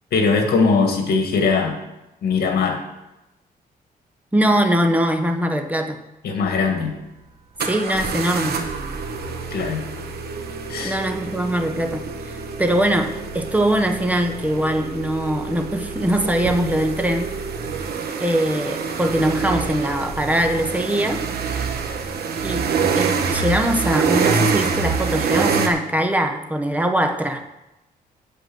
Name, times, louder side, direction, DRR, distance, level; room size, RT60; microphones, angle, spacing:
voice 1, 0.1-1.8 2.2-2.8 6.2-6.9 9.5-9.8 10.7-11.0, left 4 dB, 75° left, 4 dB, 2.2 m, -20 dB
voice 2, 4.3-6.0 7.6-8.6 10.8-17.3 18.2-21.3 22.4-27.4, right 1 dB, 10° right, 5 dB, 1.1 m, -22 dB
sound 1, 6.4-6.5 7.6-25.7, right 5 dB, 75° right, 1.3 m, -26 dB
8.3 x 7.2 x 7.8 m, 0.94 s
cardioid pair, 130°, 16 cm